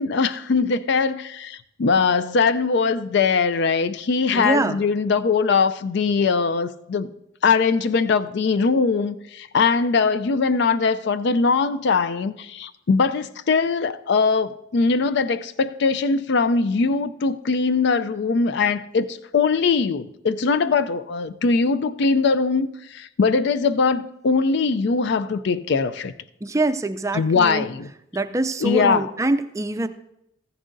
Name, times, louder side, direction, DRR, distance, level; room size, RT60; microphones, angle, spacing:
voice 1, 0.0-7.1 7.4-26.1 27.1-27.9 28.6-29.1, left 4 dB, 65° left, 14 dB, 0.4 m, -21 dB
voice 2, 4.3-4.8 26.4-27.7 28.1-29.9, right 2 dB, 15° right, 10 dB, 0.4 m, -24 dB
14.5 x 10.0 x 2.6 m, 0.78 s
head